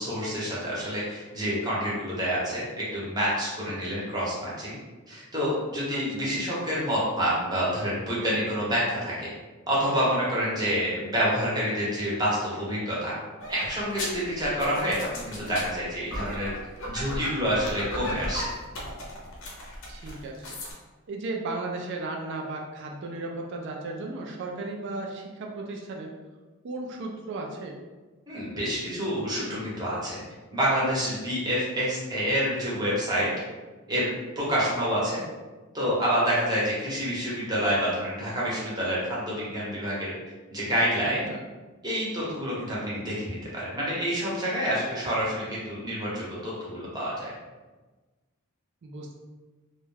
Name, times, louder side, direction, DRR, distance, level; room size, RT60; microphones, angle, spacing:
voice 1, 0.0-4.8 5.1-9.3 9.7-13.1 13.5-16.5 16.9-18.5 28.3-30.2 30.5-33.3 33.9-34.1 34.4-35.2 35.7-40.1 40.5-41.3 41.8-47.3, equal, 20° right, -7 dB, 0.8 m, -28 dB
voice 2, 5.9-6.3 19.9-20.6 21.1-26.1 26.6-27.8 41.3-41.4 48.8-49.1, right 2 dB, 55° right, 0 dB, 0.3 m, -35 dB
sound 1, 13.4-20.7, left 1 dB, 65° left, 0.6 m, -36 dB
2.3 x 2.1 x 3.2 m, 1.3 s
head